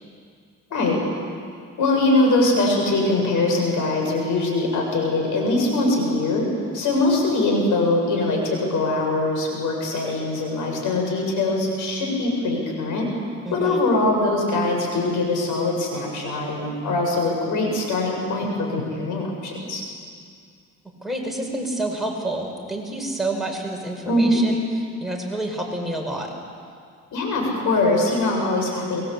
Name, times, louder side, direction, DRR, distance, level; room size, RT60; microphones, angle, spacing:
voice 1, 1.8-6.5 6.7-13.1 13.5-19.8 24.1-24.4 27.1-29.0, left 2 dB, 80° left, 1 dB, 7.3 m, -22 dB
voice 2, 13.5-13.8 21.0-24.6 25.0-26.4, right 1 dB, ahead, 1 dB, 5.5 m, -28 dB
25.0 x 22.0 x 8.4 m, 2.2 s
cardioid pair, 90°, 30 cm